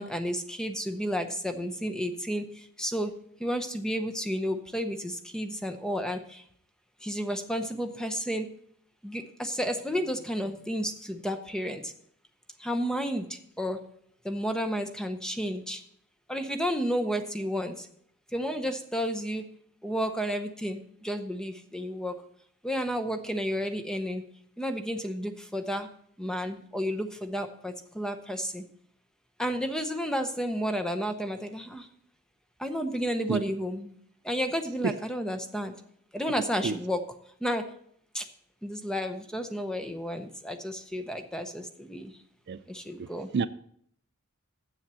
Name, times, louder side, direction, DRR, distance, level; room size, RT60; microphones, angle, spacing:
voice 1, 0.0-3.1 3.4-6.4 7.0-8.5 9.0-11.9 12.6-13.9 14.2-15.8 16.3-17.9 18.3-19.5 19.8-22.2 22.6-24.2 24.6-25.9 26.2-28.6 29.4-31.9 32.6-33.9 34.2-35.7 36.1-37.0 37.4-37.7 38.1-38.3 38.6-42.1 42.7-43.3, equal, 5° left, 0.7 m, -32 dB
voice 2, 33.3-33.4 34.8-34.9 36.6-36.8 42.5-42.6 43.0-43.1 43.3-43.5, right 5 dB, 50° right, 0.3 m, -27 dB
7.6 x 7.1 x 7.4 m
head